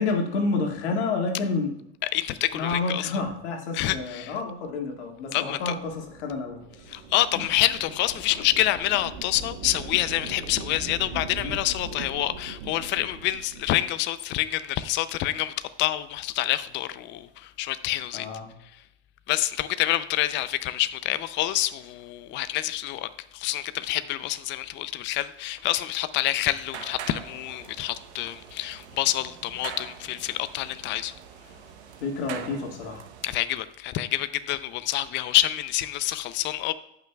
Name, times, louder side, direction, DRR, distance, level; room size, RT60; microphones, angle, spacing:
voice 1, 0.0-1.7 2.5-6.9 7.3-7.5 11.1-11.6 18.1-18.5 32.0-33.0, left 3 dB, 80° left, 2.0 m, -29 dB
voice 2, 2.0-3.1 3.7-4.3 5.3-5.7 6.9-15.5 15.8-18.3 19.3-31.1 33.2-36.7, left 14 dB, 35° left, 0.5 m, -27 dB
sound 1, 5.7-13.8, right 5 dB, 55° right, 1.3 m, -40 dB
sound 2, 26.0-33.4, right 8 dB, 75° right, 1.0 m, -43 dB
16.5 x 5.9 x 2.3 m
supercardioid pair, 120°, 33 cm